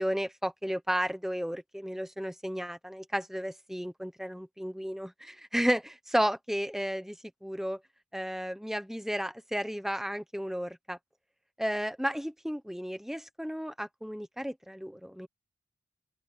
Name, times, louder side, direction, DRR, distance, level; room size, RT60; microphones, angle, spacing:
voice 1, 0.0-7.1 7.4-7.8 8.1-11.0 11.6-15.3, equal, ahead, 1.1 m, -33 dB
open air
head